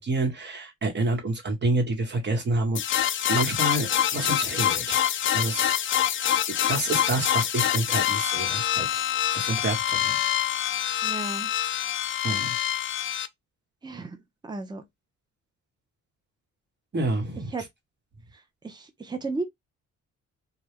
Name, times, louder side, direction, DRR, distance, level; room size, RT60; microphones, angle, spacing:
voice 1, 0.0-2.8 3.3-5.0 5.3-5.8 6.1-6.4 6.7-9.0 9.3-10.2 12.2-12.6 16.9-17.5, right 2 dB, 35° right, 1.2 m, -28 dB
sound 1, 2.8-13.3, left 11 dB, 45° left, 0.4 m, -26 dB
voice 2, 11.0-11.5 13.8-14.8 17.5-17.6 18.6-19.4, right 3 dB, 15° right, 0.7 m, -34 dB
2.3 x 2.2 x 3.4 m
cardioid pair, 80°, 30 cm